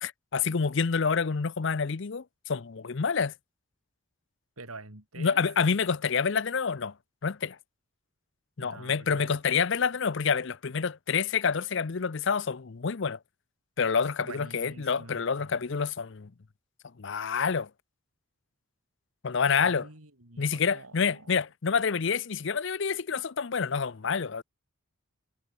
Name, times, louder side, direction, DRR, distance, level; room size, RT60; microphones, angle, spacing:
voice 1, 0.0-3.3 5.2-6.9 7.2-7.6 8.6-13.2 13.8-16.3 17.0-17.7 19.2-19.9 20.4-24.4, left 5 dB, 55° left, 0.6 m, -28 dB
voice 2, 4.6-5.4 8.6-9.3 14.2-15.5 19.6-21.3, right 2 dB, 80° right, 4.7 m, -46 dB
head